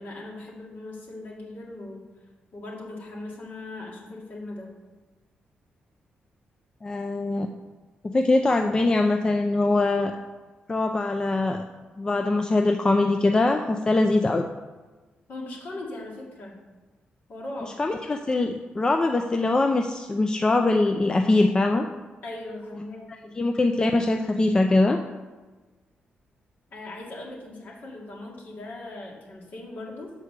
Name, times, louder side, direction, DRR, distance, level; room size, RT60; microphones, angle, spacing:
voice 1, 0.0-2.1 2.5-4.7 15.3-16.6 17.3-17.8 22.2-23.3 26.7-30.1, left 2 dB, 55° left, -2 dB, 2.1 m, -39 dB
voice 2, 6.8-7.5 8.0-10.1 10.7-11.6 12.0-14.5 17.8-21.9 23.4-25.0, left 2 dB, 20° left, 5 dB, 0.4 m, -22 dB
6.5 x 4.8 x 6.6 m, 1.2 s
cardioid pair, 115°, 4 cm